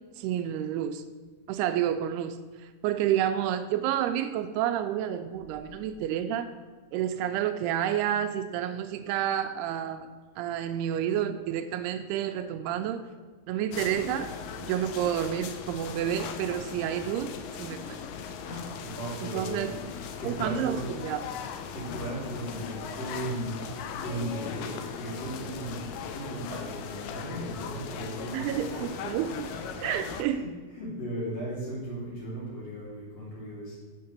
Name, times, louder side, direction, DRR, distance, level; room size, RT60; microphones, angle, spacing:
voice 1, 0.2-1.0 1.5-6.5 6.9-10.1 10.4-13.0 13.5-14.3 14.6-17.3 17.6-18.0 19.2-19.7 20.2-21.2 28.3-29.5 29.8-30.4, right 10 dB, 85° right, 9 dB, 2.5 m, -29 dB
sound 1, 13.7-30.2, left 7 dB, 80° left, 1.9 m, -39 dB
voice 2, 18.4-19.9 20.2-20.8 21.7-23.6 24.0-29.0 29.9-33.7, right 1 dB, 40° left, -7 dB, 4.1 m, -37 dB
7.7 x 6.5 x 6.7 m, 1.4 s
omnidirectional pair, 4.7 m